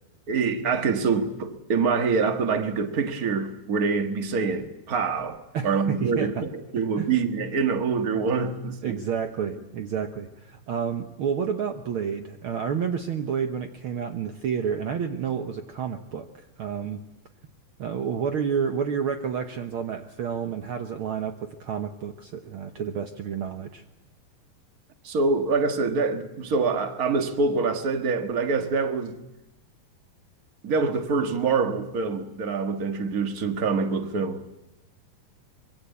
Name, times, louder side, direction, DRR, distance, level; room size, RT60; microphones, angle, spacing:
voice 1, 0.3-5.4 5.6-9.0 25.0-29.1 30.6-34.5, right 4 dB, 40° right, 1.3 m, -25 dB
voice 2, 5.5-6.4 7.0-7.1 8.8-17.0 17.8-23.8, right 7 dB, 75° right, 1.2 m, -30 dB
25.0 x 23.0 x 8.3 m
omnidirectional pair, 3.9 m